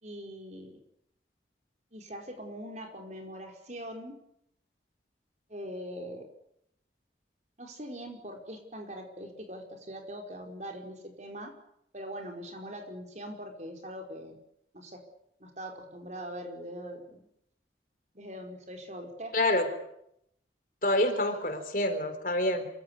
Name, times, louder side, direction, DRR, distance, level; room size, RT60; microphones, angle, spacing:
voice 1, 0.0-0.8 1.9-4.2 5.5-6.2 7.6-11.5 11.9-14.4 14.7-15.0 15.4-17.2 18.1-19.4 21.1-21.2, equal, 40° right, 3 dB, 5.0 m, -42 dB
voice 2, 19.3-19.7 20.8-22.7, left 1 dB, 50° left, 7 dB, 4.0 m, -27 dB
27.0 x 16.0 x 9.9 m, 0.76 s
head